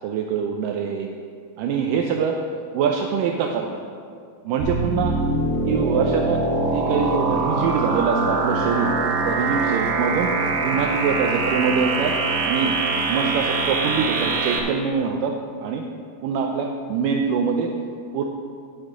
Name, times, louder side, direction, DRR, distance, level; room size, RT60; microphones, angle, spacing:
voice 1, 0.0-1.1 1.6-2.4 2.7-3.8 4.4-5.2 5.7-6.5 6.7-8.9 9.2-10.3 10.6-12.2 12.4-12.8 13.1-15.8 16.2-17.7 18.1-18.2, right 6 dB, 90° right, 2 dB, 1.9 m, -24 dB
sound 1, 4.6-14.6, right 3 dB, 75° right, 2.5 m, -23 dB
10.5 x 9.8 x 3.7 m, 2.3 s
omnidirectional pair, 4.4 m